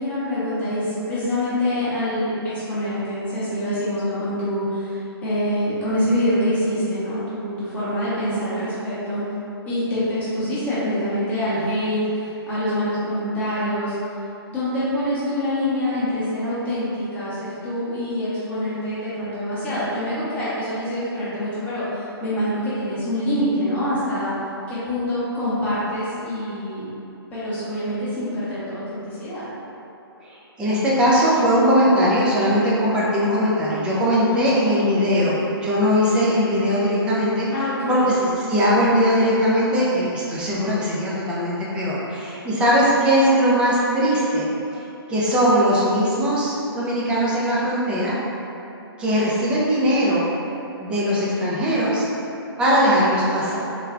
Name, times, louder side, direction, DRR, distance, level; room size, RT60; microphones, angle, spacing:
voice 1, 0.0-9.2 9.7-13.9 14.5-24.3 24.7-26.9 27.3-29.4 34.3-35.0 37.5-38.1, left 1 dB, 10° left, -12 dB, 0.8 m, -25 dB
voice 2, 30.2-37.5 37.9-44.5 45.1-48.1 49.0-50.2 50.8-52.1 52.6-53.6, equal, 5° right, -7 dB, 0.4 m, -20 dB
3.3 x 2.2 x 3.6 m, 3.0 s
hypercardioid pair, 155°, 13 cm